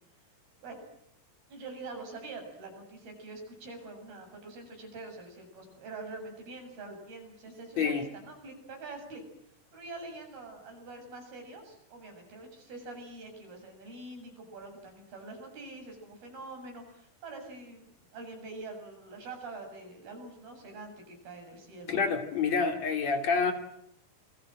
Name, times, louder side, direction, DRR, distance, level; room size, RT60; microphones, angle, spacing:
voice 1, 1.5-9.2 9.7-22.1, right 3 dB, 85° right, 4 dB, 9.4 m, -45 dB
voice 2, 21.9-23.5, left 5 dB, 50° left, 5 dB, 4.0 m, -27 dB
28.0 x 22.5 x 7.9 m, 0.74 s
omnidirectional pair, 4.2 m